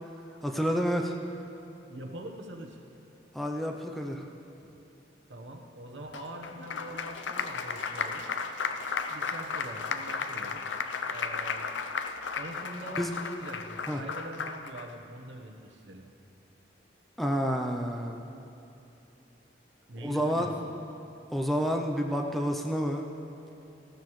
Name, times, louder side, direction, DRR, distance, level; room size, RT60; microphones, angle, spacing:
voice 1, 0.4-1.2 3.3-4.3 13.0-13.2 13.9-14.0 17.2-18.2 20.0-20.5 21.3-23.0, equal, ahead, 2 dB, 0.5 m, -29 dB
voice 2, 1.9-2.8 5.3-8.3 9.1-10.6 11.1-11.7 12.4-16.1 19.9-20.5, right 1 dB, 80° right, 2 dB, 1.1 m, -43 dB
Applause, 6.1-14.9, left 5 dB, 85° left, 0.6 m, -34 dB
15.5 x 13.5 x 3.2 m, 2.9 s
head